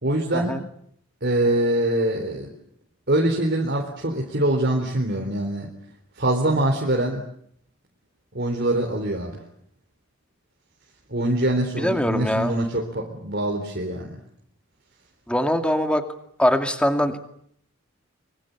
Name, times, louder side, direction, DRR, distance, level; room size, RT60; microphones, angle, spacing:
voice 1, 0.0-0.6 1.2-2.5 3.1-5.7 6.2-7.2 8.3-9.4 11.1-14.1, right 1 dB, 50° right, 1 dB, 3.9 m, -24 dB
voice 2, 11.8-12.5 15.3-16.0 16.4-17.2, equal, 5° left, 7 dB, 2.4 m, -22 dB
25.0 x 24.5 x 8.4 m, 0.67 s
head